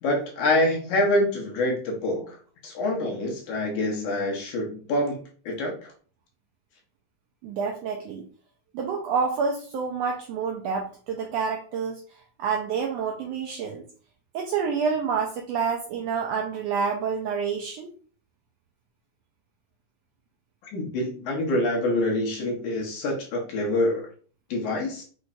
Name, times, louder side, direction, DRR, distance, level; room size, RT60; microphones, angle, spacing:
voice 1, 0.0-2.4 2.6-5.9 20.7-24.1 24.5-25.0, left 1 dB, 80° left, -1 dB, 2.7 m, -26 dB
voice 2, 7.4-8.3 8.7-12.0 12.4-13.8 14.3-17.9, right 5 dB, 80° right, 1 dB, 1.4 m, -28 dB
6.0 x 3.2 x 2.6 m, 0.42 s
omnidirectional pair, 3.5 m